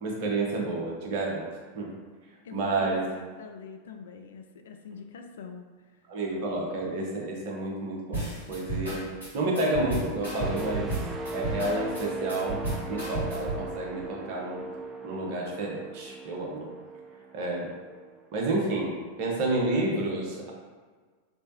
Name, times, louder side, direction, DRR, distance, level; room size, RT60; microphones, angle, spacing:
voice 1, 0.0-1.4 1.7-1.9 2.5-3.1 6.1-9.1 9.3-10.9 11.3-14.6 15.0-16.7 17.3-17.7 18.3-20.5, right 2 dB, 45° right, -2 dB, 0.9 m, -30 dB
voice 2, 2.4-5.6, left 6 dB, 60° left, 6 dB, 0.3 m, -44 dB
sound 1, 8.1-13.6, right 1 dB, 85° left, 1.4 m, -33 dB
sound 2, 10.4-18.2 18.6-18.9, right 3 dB, 20° right, 0.4 m, -39 dB
3.3 x 3.2 x 2.7 m, 1.5 s
figure-of-eight pair, 90°, 0 cm